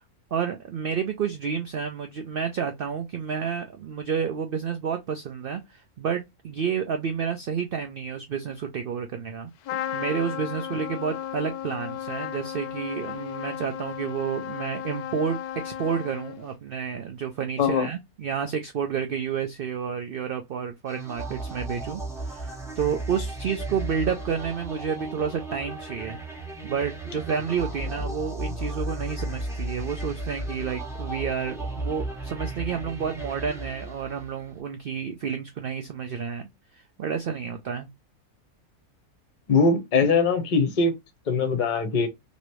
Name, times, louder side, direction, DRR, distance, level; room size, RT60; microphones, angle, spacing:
voice 1, 0.3-9.5 9.9-15.4 15.6-26.2 26.6-36.5 36.7-37.9, right 7 dB, 80° right, 0.5 m, -30 dB
Trumpet, 9.6-16.6, left 10 dB, 90° left, 1.1 m, -34 dB
sound 1, 20.9-34.5, right 2 dB, 5° right, 0.6 m, -35 dB
voice 2, 39.5-40.9 41.3-42.1, left 4 dB, 40° left, 0.8 m, -21 dB
3.1 x 2.7 x 2.9 m
omnidirectional pair, 1.5 m